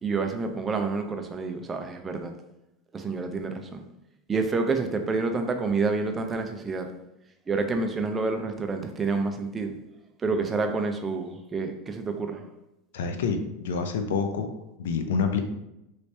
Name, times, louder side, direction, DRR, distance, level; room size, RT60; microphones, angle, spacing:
voice 1, 0.0-2.3 2.9-3.8 4.3-6.9 7.5-9.7 10.2-12.5, right 4 dB, 20° right, 5 dB, 0.4 m, -28 dB
voice 2, 12.9-14.5 14.8-15.4, left 5 dB, 85° left, 7 dB, 0.4 m, -27 dB
3.2 x 2.7 x 3.2 m, 0.87 s
supercardioid pair, 130°, 0 cm